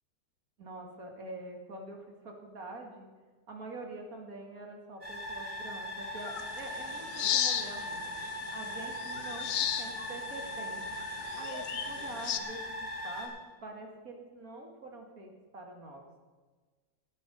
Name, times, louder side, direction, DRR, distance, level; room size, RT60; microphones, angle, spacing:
voice 1, 0.6-3.1 3.5-8.1 8.5-9.5 9.8-10.8 11.3-12.8 13.0-13.4 13.6-16.1, right 2 dB, 55° right, 2 dB, 2.6 m, -45 dB
sound 1, 5.0-13.3, left 1 dB, 30° right, 4.1 m, -39 dB
sound 2, 6.2-12.4, left 10 dB, 85° left, 1.5 m, -36 dB
18.5 x 8.8 x 5.4 m, 1.4 s
omnidirectional pair, 1.8 m